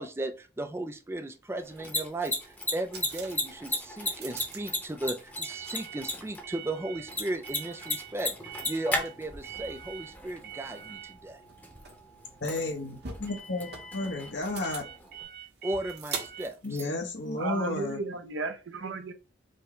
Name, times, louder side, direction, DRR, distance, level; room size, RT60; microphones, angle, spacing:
voice 1, 0.0-8.3 8.6-11.4 15.6-16.9, right 1 dB, 15° right, 0.3 m, -36 dB
sound 1, 1.5-17.9, right 6 dB, 60° right, 1.0 m, -44 dB
Mechanisms, 1.6-15.2, left 1 dB, 10° left, 0.8 m, -37 dB
voice 2, 12.4-14.9 16.6-18.0, left 2 dB, 65° left, 0.9 m, -32 dB
voice 3, 17.4-19.1, right 4 dB, 80° right, 0.6 m, -34 dB
5.2 x 2.2 x 3.7 m
head